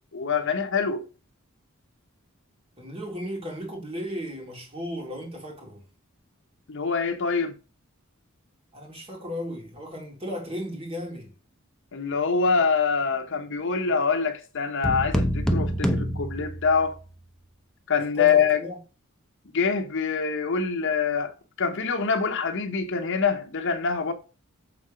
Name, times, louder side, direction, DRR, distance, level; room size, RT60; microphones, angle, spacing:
voice 1, 0.1-1.0 6.7-7.6 11.9-17.0 17.9-18.6 19.5-24.1, left 5 dB, 60° left, 0.9 m, -25 dB
voice 2, 2.8-5.8 8.7-11.3 18.2-18.8, equal, 25° right, 2.3 m, -35 dB
sound 1, 14.8-17.1, equal, 5° left, 0.7 m, -26 dB
7.1 x 3.8 x 4.9 m
head